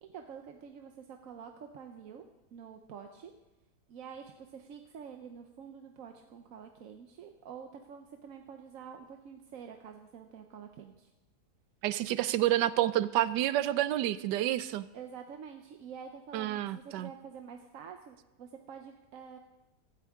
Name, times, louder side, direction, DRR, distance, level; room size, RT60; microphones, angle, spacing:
voice 1, 0.0-2.2 2.5-3.3 3.9-11.1 14.9-19.4, right 7 dB, 60° right, 4 dB, 1.1 m, -48 dB
voice 2, 11.8-14.9 16.3-17.1, right 13 dB, 85° right, 15 dB, 1.2 m, -29 dB
15.5 x 13.5 x 3.6 m, 0.99 s
omnidirectional pair, 1.8 m